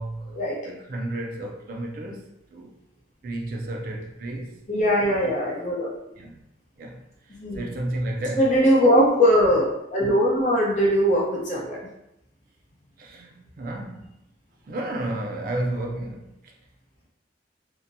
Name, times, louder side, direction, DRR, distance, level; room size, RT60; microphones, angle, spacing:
voice 1, 0.0-0.4 0.6-2.7 3.2-4.6 5.2-5.3 6.2-6.4 6.8-7.0 7.3-8.5 13.0-14.1 14.6-16.5, right 1 dB, 50° right, 0.3 m, -32 dB
voice 2, 4.7-5.9 7.4-7.7 8.4-11.8, equal, 40° left, 0.7 m, -20 dB
2.8 x 2.1 x 2.6 m
head